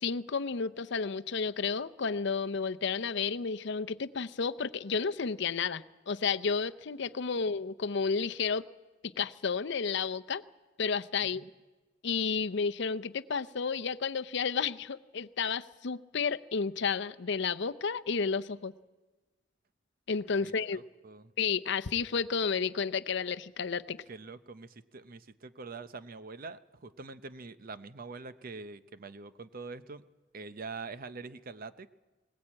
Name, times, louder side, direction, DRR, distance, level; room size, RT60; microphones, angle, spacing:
voice 1, 0.0-8.7 9.2-10.4 10.8-11.5 12.0-18.7 20.1-20.8 21.4-24.0, left 5 dB, 65° left, 11 dB, 0.6 m, -31 dB
voice 2, 20.4-21.3 24.1-30.0 30.3-31.9, right 4 dB, 50° right, 13 dB, 0.7 m, -44 dB
20.5 x 19.0 x 8.7 m, 1.2 s
head